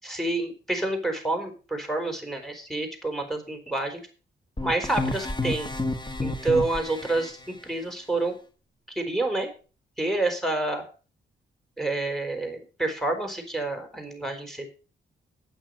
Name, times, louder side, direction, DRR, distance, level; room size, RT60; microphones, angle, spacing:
voice 1, 0.0-4.0 4.6-5.7 6.2-8.3 8.9-9.5 10.0-10.8 11.8-14.6, right 2 dB, ahead, 5 dB, 4.6 m, -28 dB
sound 1, 4.6-7.3, left 2 dB, 20° left, 1.7 m, -30 dB
9.3 x 8.7 x 6.6 m, 0.36 s
cardioid pair, 60°, 20 cm